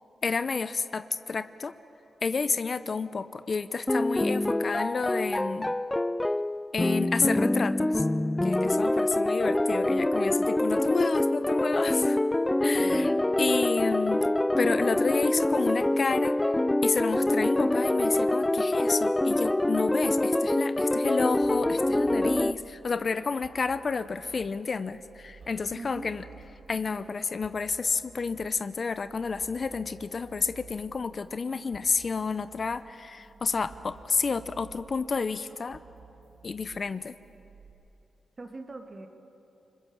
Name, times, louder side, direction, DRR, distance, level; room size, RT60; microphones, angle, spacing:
voice 1, 0.2-1.7 2.2-5.7 6.7-8.0 8.4-12.2 12.6-13.1 13.4-14.3 14.6-16.4 16.8-26.2 26.7-35.8 36.4-37.1, left 4 dB, 50° left, 13 dB, 0.8 m, -30 dB
sound 1, 3.9-22.5, left 1 dB, 15° left, 0.6 m, -25 dB
voice 2, 12.8-13.1 25.7-26.1 38.4-39.1, right 3 dB, 40° right, 5 dB, 2.6 m, -41 dB
sound 2, 21.4-37.7, right 5 dB, 65° right, 3.0 m, -53 dB
29.5 x 20.0 x 7.3 m, 2.9 s
cardioid pair, 65°, 0 cm